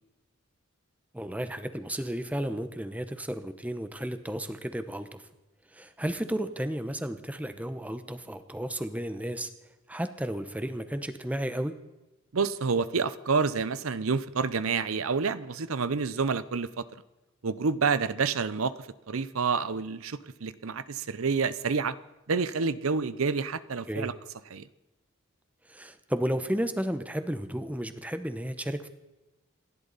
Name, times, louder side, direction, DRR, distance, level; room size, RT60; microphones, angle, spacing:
voice 1, 1.1-5.2 5.7-9.5 9.9-11.7 23.9-24.1 25.7-28.9, equal, 5° right, 10 dB, 0.9 m, -33 dB
voice 2, 12.3-16.8 17.4-18.7 19.1-21.9 22.3-24.1 24.5-24.6, right 5 dB, 80° right, 15 dB, 0.7 m, -28 dB
28.0 x 11.5 x 4.1 m, 1.0 s
head